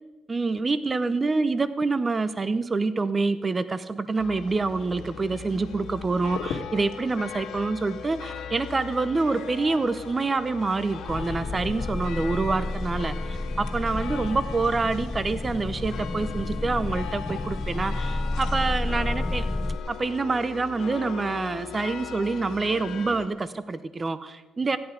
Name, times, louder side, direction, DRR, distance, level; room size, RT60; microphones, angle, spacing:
voice 1, 0.3-19.5 19.9-24.8, right 3 dB, 30° right, 13 dB, 0.7 m, -27 dB
sound 1, 4.2-23.3, left 7 dB, 80° left, 2.0 m, -38 dB
sound 2, 11.1-19.8, left 2 dB, 20° left, 0.4 m, -31 dB
15.0 x 10.5 x 5.1 m, 1.1 s
cardioid pair, 90°, 0 cm